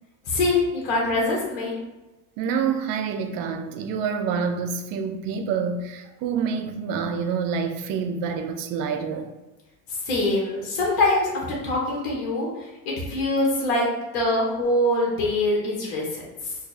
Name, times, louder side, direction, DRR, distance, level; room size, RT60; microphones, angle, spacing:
voice 1, 0.3-1.7 9.9-16.5, left 2 dB, 80° left, 1.1 m, -24 dB
voice 2, 2.4-9.3, right 6 dB, 65° right, 0.5 m, -27 dB
2.7 x 2.7 x 4.0 m
cardioid pair, 130°, 36 cm